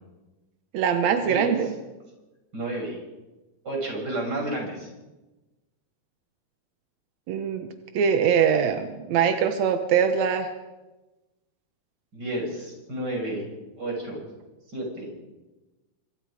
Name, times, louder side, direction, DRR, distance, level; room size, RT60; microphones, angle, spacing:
voice 1, 0.7-1.7 7.3-7.7 7.9-10.5, right 7 dB, 70° right, 7 dB, 1.7 m, -22 dB
voice 2, 2.5-3.0 3.6-4.9 12.1-13.5 13.8-14.3 14.7-15.1, right 1 dB, 25° right, 0 dB, 6.8 m, -31 dB
25.5 x 23.5 x 5.0 m, 1.1 s
omnidirectional pair, 4.6 m